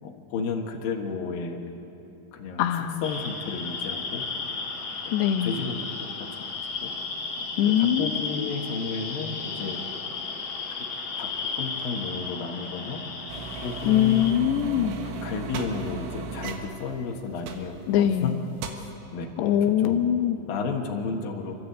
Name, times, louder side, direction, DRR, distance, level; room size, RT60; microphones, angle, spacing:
voice 1, 0.0-1.6 2.3-2.6 3.0-4.2 5.4-6.9 7.8-9.8 10.8-10.9 11.2-11.3 11.5-13.0 13.6-14.3 14.8-18.3 19.1-19.5 19.8-20.0 20.5-21.6, left 5 dB, 65° left, 1 dB, 3.1 m, -33 dB
voice 2, 2.6-3.0 5.1-5.6 7.6-8.6 13.9-15.0 17.9-18.4 19.4-20.4, left 10 dB, 90° left, 5 dB, 3.0 m, -23 dB
sound 1, 3.0-14.3, left 4 dB, 45° left, 1.7 m, -34 dB
sound 2, 13.3-18.1 18.4-18.7, right 4 dB, 90° right, 3.6 m, -36 dB
29.0 x 12.0 x 8.2 m, 2.9 s
omnidirectional pair, 4.8 m